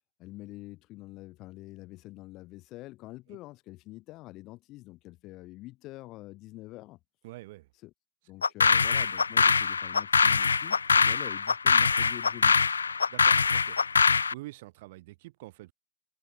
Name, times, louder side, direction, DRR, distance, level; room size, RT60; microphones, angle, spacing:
voice 1, 0.2-7.0 7.8-7.9 8.3-10.8 11.0-12.6, left 18 dB, 40° left, 8.0 m, -46 dB
voice 2, 7.2-7.7 10.9-11.1 13.1-13.8 14.3-15.7, right 19 dB, 50° right, 3.4 m, -46 dB
sound 1, 8.4-14.3, left 5 dB, 75° left, 0.6 m, -23 dB
figure-of-eight pair, 90°, 0 cm